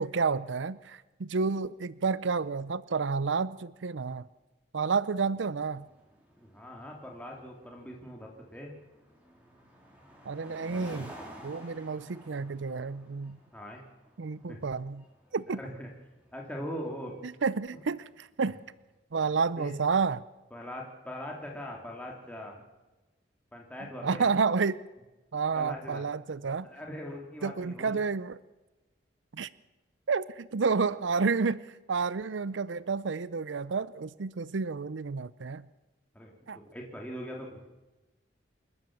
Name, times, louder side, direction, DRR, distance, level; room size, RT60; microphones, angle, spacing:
voice 1, 0.0-4.3 4.7-5.9 10.3-11.1 11.4-13.4 14.2-15.0 15.3-15.6 17.2-18.6 19.1-20.2 24.0-24.8 25.3-26.7 27.4-28.4 29.3-29.5 30.1-35.6 36.5-36.6, right 5 dB, 85° right, 18 dB, 0.6 m, -30 dB
sound 1, 5.2-18.7, equal, 10° right, 4.1 m, -52 dB
voice 2, 6.4-8.7 13.5-13.8 14.5-14.6 15.5-15.9 16.3-17.1 19.6-19.7 20.5-22.6 23.5-24.3 25.5-26.0 26.7-28.0 36.1-37.7, equal, 5° left, -1 dB, 2.8 m, -41 dB
28.0 x 13.0 x 7.3 m, 1.1 s
head